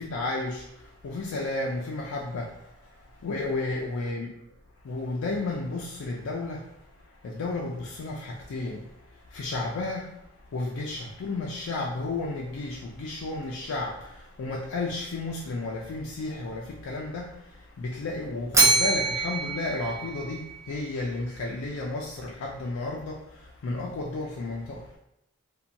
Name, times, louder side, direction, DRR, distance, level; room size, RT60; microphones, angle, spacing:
voice 1, 0.0-2.6 3.2-4.3 4.8-6.7 7.2-8.9 9.3-10.2 10.5-24.9, left 2 dB, 75° left, -3 dB, 0.4 m, -32 dB
Bell, 18.5-20.8, right 3 dB, 15° right, 0.4 m, -25 dB
2.7 x 2.2 x 2.5 m, 0.81 s
head